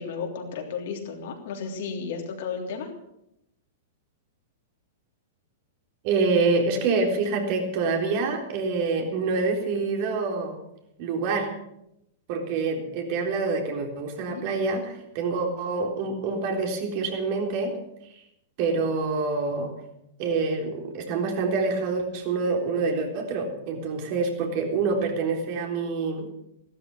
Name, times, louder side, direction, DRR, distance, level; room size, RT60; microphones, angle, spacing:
voice 1, 0.0-2.9 14.2-14.4, left 5 dB, 60° left, 2 dB, 3.3 m, -33 dB
voice 2, 6.0-10.6 11.0-11.5 12.3-17.7 18.6-19.7 20.2-26.3, right 4 dB, 50° right, 2 dB, 3.8 m, -26 dB
15.5 x 13.0 x 6.3 m, 0.82 s
hypercardioid pair, 105°, 0 cm